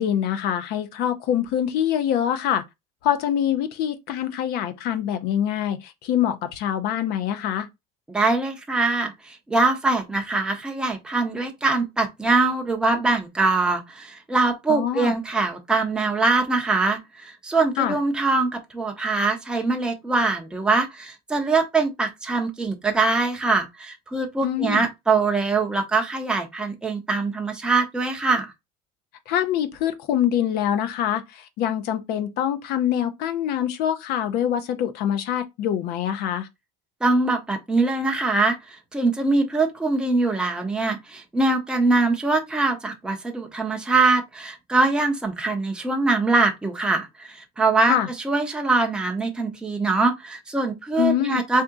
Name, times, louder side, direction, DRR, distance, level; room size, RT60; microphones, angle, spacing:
voice 1, 0.0-2.6 3.0-7.7 14.7-15.1 17.8-18.0 24.4-24.8 29.3-36.5 47.9-48.1 51.0-51.4, left 10 dB, 55° left, 0.7 m, -24 dB
voice 2, 8.1-28.5 37.0-48.0 48.2-51.6, right 3 dB, 5° right, 0.6 m, -23 dB
3.5 x 2.7 x 3.6 m
cardioid pair, 150°, 20 cm